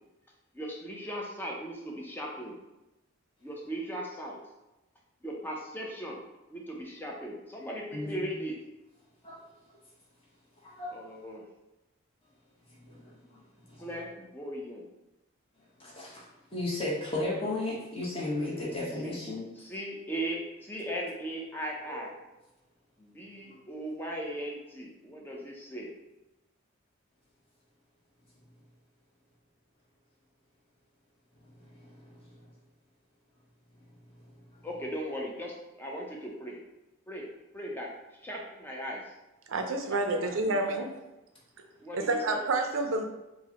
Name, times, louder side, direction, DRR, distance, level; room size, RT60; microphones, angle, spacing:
voice 1, 0.5-2.5 3.4-4.4 5.2-6.2 6.5-8.5 10.9-11.4 13.8-14.8 18.4-18.7 19.0-19.1 19.6-22.1 23.0-25.9 34.6-36.6 37.1-37.3 37.5-37.9 38.2-39.1 39.9-40.9 41.8-42.4, equal, 10° left, -2 dB, 0.5 m, -38 dB
voice 2, 7.9-8.3 9.2-9.4 9.7-9.8 10.6-11.1 12.6-13.9 15.6-19.5 21.9-22.2 23.5-23.6 31.4-32.5 33.7-34.7 41.5-41.7, left 2 dB, 25° left, -6 dB, 1.0 m, -37 dB
voice 3, 39.5-40.9 41.9-43.0, right 2 dB, 70° right, 5 dB, 0.5 m, -29 dB
4.9 x 2.1 x 2.8 m, 0.99 s
head